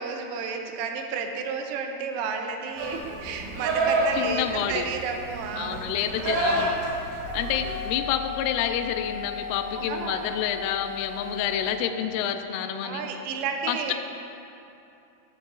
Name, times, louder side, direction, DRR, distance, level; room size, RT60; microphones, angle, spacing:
voice 1, 0.0-5.8 9.8-10.3 12.8-13.9, right 5 dB, 90° right, 4 dB, 3.2 m, -32 dB
Livestock farm animals working animals, 2.8-7.9, right 2 dB, 65° right, 2.0 m, -29 dB
voice 2, 4.2-4.9 5.6-6.8 7.3-13.1 13.7-13.9, left 9 dB, 85° left, 7 dB, 3.1 m, -28 dB
sound 1, 7.2-11.8, left 4 dB, 55° left, 1.4 m, -36 dB
12.5 x 9.2 x 2.4 m, 2.8 s
omnidirectional pair, 5.7 m